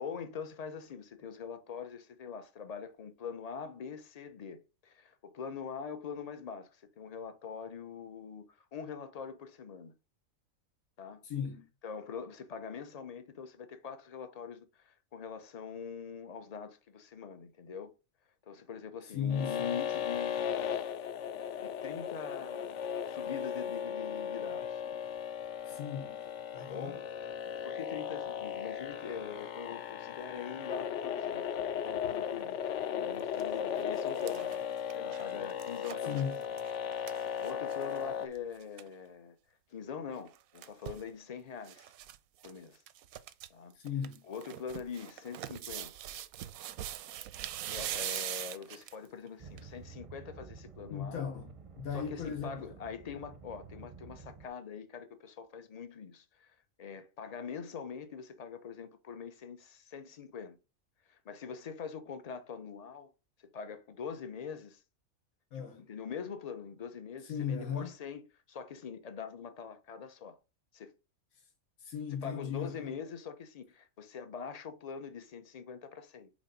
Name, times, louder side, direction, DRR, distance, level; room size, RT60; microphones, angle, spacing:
voice 1, 0.0-9.9 11.0-11.2 11.8-17.9 18.5-20.7 21.6-24.8 26.6-27.0 27.6-31.4 31.7-34.5 34.9-36.3 37.4-39.4 39.7-41.9 42.4-42.8 43.5-43.7 44.3-45.9 47.7-51.2 51.9-60.6 61.1-63.1 63.4-64.8 65.6-68.2 68.5-70.4 70.7-70.9 72.2-76.3, left 6 dB, 40° left, 0.6 m, -43 dB
voice 2, 11.2-11.7 19.1-19.7 25.6-26.2 26.5-27.0 36.0-36.5 43.7-44.2 50.9-52.7 65.5-65.9 67.2-67.9 71.8-72.9, left 7 dB, 90° left, 1.5 m, -37 dB
sound 1, 19.3-38.3, left 8 dB, 65° left, 0.8 m, -36 dB
sound 2, 33.1-33.4 33.8-38.0 38.3-38.4 38.6-38.9 40.1-41.1 41.6-42.2 42.4-42.5 42.9-43.5 43.9-49.1 49.6-49.7, right 12 dB, 90° right, 1.0 m, -42 dB
sound 3, 49.4-54.5, right 5 dB, 35° right, 0.5 m, -51 dB
5.2 x 3.9 x 5.0 m
omnidirectional pair, 1.4 m